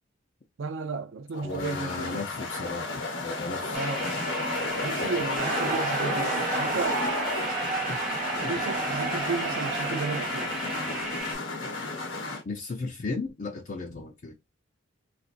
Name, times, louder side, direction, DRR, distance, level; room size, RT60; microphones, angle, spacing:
voice 1, 0.6-2.2 3.7-4.0 4.8-7.0 8.4-10.5, right 4 dB, 70° right, 0.5 m, -33 dB
sound 1, 1.3-12.4, left 3 dB, 70° left, 1.0 m, -33 dB
voice 2, 1.4-2.9 3.2-3.7 7.9-8.0 8.4-8.5 12.5-14.4, left 3 dB, 45° left, 0.6 m, -35 dB
sound 2, 3.7-11.3, equal, 5° right, 0.9 m, -35 dB
sound 3, 5.4-11.2, right 4 dB, 40° right, 0.9 m, -32 dB
4.1 x 2.4 x 2.5 m
head